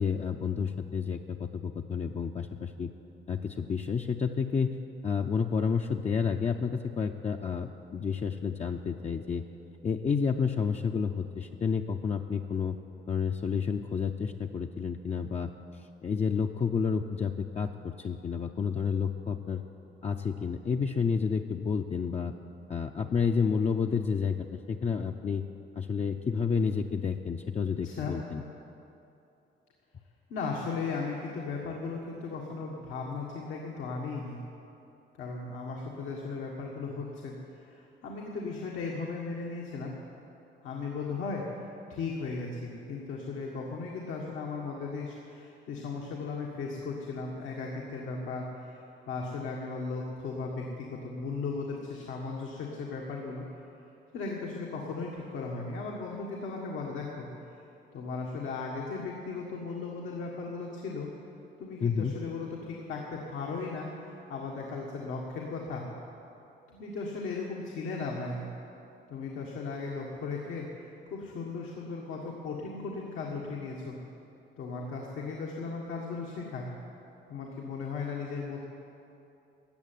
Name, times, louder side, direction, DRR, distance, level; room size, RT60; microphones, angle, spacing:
voice 1, 0.0-2.9 3.3-4.8 5.0-9.4 9.8-12.8 13.1-15.5 16.0-19.6 20.0-22.3 22.7-25.4 25.8-28.4 61.8-62.1, left 6 dB, 35° left, 3 dB, 0.6 m, -30 dB
voice 2, 27.8-28.2 30.3-34.4 35.2-39.9 40.6-41.5 41.9-53.4 54.1-57.3 57.9-61.1 61.6-65.9 66.7-68.4 69.1-74.0 74.6-76.6 77.3-78.6, left 4 dB, 85° left, -2 dB, 1.7 m, -36 dB
14.0 x 8.0 x 9.2 m, 2.9 s
cardioid pair, 90°, 20 cm